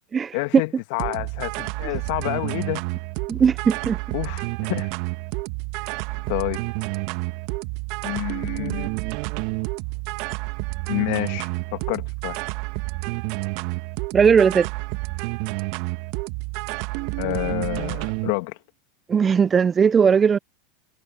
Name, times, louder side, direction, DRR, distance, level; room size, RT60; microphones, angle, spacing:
voice 1, 0.3-2.8 4.1-4.9 6.3-6.6 8.0-8.9 10.9-12.4 17.2-18.6, left 27 dB, 60° left, 2.3 m, -28 dB
sound 1, 1.0-18.3, right 27 dB, 55° right, 1.6 m, -29 dB
voice 2, 3.3-4.0 14.1-14.7 19.1-20.4, right 6 dB, 25° right, 0.7 m, -18 dB
hypercardioid pair, 90°, 0 cm